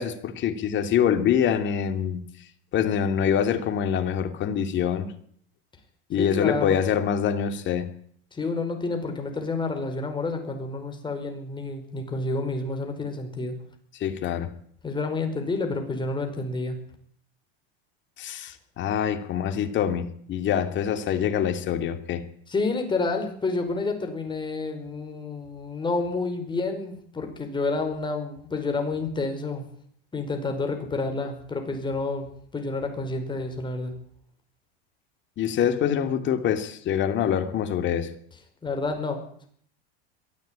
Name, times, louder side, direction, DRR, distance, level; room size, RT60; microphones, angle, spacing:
voice 1, 0.0-2.2 2.7-5.1 6.1-7.9 14.0-14.5 18.2-22.2 35.4-38.1, left 8 dB, 40° left, 2.6 m, -25 dB
voice 2, 6.2-6.8 8.3-13.5 14.8-16.8 22.5-29.7 30.1-33.9 38.6-39.5, left 3 dB, 15° left, 4.9 m, -29 dB
22.5 x 13.5 x 8.9 m
supercardioid pair, 125°, 30 cm